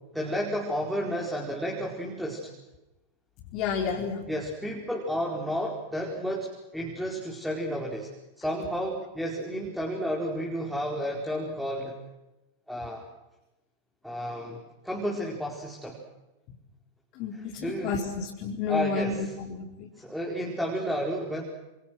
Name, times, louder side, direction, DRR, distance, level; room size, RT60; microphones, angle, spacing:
voice 1, 0.1-2.5 4.3-8.1 8.4-11.9 12.7-13.0 14.0-16.0 17.6-17.9 18.7-19.2 19.9-21.4, equal, ahead, -1 dB, 4.7 m, -31 dB
voice 2, 3.5-4.2 16.5-16.6 17.1-19.9, left 5 dB, 40° left, -1 dB, 4.6 m, -31 dB
29.5 x 28.0 x 6.3 m, 0.99 s
figure-of-eight pair, 90°, 0 cm